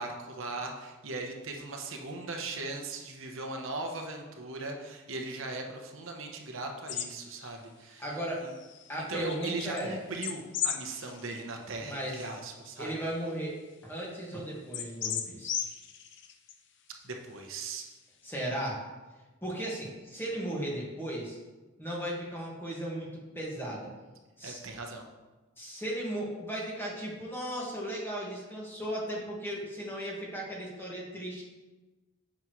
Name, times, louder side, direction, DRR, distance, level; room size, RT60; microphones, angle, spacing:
voice 1, 0.0-8.1 8.4-8.5 8.9-12.9 17.0-17.9 24.4-25.1, right 3 dB, 70° right, 2 dB, 0.9 m, -39 dB
sound 1, 6.9-7.1 7.4-7.5 8.5-9.8 10.2-11.4 11.9-12.0 12.7-12.8 13.1-13.2 14.7-16.5, left 9 dB, 60° left, 0.6 m, -36 dB
voice 2, 8.0-8.4 8.9-10.0 11.9-12.3 12.8-13.6 13.8-15.6 18.2-18.8 19.4-21.4 21.8-23.1 23.3-23.9 24.4-24.6 25.6-31.4, right 1 dB, 10° left, -4 dB, 1.7 m, -36 dB
9.3 x 6.4 x 3.1 m, 1.2 s
head